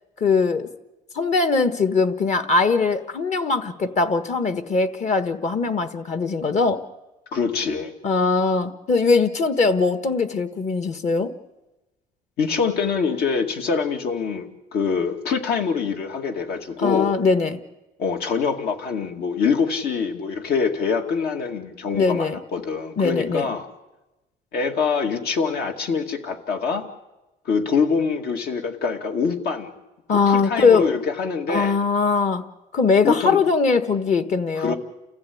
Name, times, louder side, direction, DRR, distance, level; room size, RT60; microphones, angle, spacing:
voice 1, 0.2-0.7 1.1-6.8 8.0-11.3 16.8-17.6 21.9-22.4 23.0-23.5 30.1-30.9 31.5-32.4 32.7-34.7, left 4 dB, 45° left, 10 dB, 1.5 m, -21 dB
voice 2, 7.3-7.9 12.4-17.2 18.0-23.7 24.5-26.9 27.5-29.7 30.1-31.8 33.0-33.4 34.6-34.8, left 5 dB, 70° left, 4 dB, 2.3 m, -24 dB
29.5 x 14.5 x 8.6 m, 1.0 s
cardioid pair, 110°, 17 cm